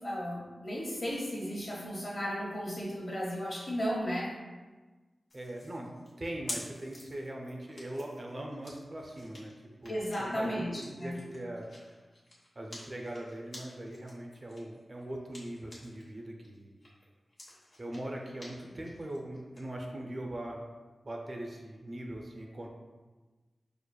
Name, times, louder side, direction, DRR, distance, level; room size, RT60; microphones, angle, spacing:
voice 1, 0.0-4.3 9.9-11.2, equal, 45° left, -4 dB, 0.9 m, -34 dB
sound 1, 5.3-16.1 16.4-19.6, left 1 dB, 65° left, 1.0 m, -49 dB
voice 2, 5.3-5.9 6.2-9.5 9.8-9.9 10.2-11.9 12.6-16.8 17.8-20.6 21.0-22.7, right 1 dB, 40° right, 0 dB, 0.4 m, -41 dB
4.7 x 2.4 x 2.2 m, 1.3 s
wide cardioid pair, 110°, 0 cm